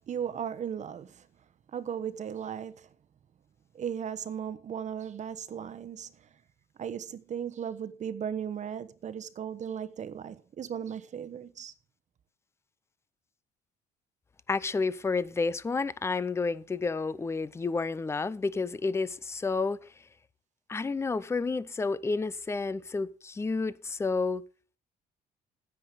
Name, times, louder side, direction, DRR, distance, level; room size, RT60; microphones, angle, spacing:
voice 1, 0.1-1.3 1.7-2.9 3.7-6.1 6.8-11.7, right 8 dB, 45° right, 1.1 m, -36 dB
voice 2, 14.5-19.8 20.7-24.4, left 4 dB, 15° left, 0.6 m, -30 dB
9.9 x 9.8 x 5.0 m
cardioid pair, 110°, 17 cm